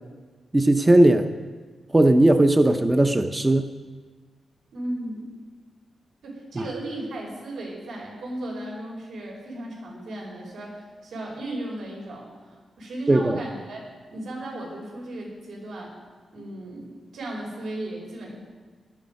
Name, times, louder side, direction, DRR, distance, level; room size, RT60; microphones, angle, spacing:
voice 1, 0.5-1.3 1.9-3.7 13.1-13.4, right 1 dB, 15° right, 7 dB, 0.5 m, -18 dB
voice 2, 4.7-5.3 6.2-13.8 14.1-15.9 16.3-18.4, right 1 dB, 85° right, -2 dB, 5.1 m, -35 dB
17.5 x 12.5 x 5.2 m, 1.4 s
wide cardioid pair, 180°, 0 cm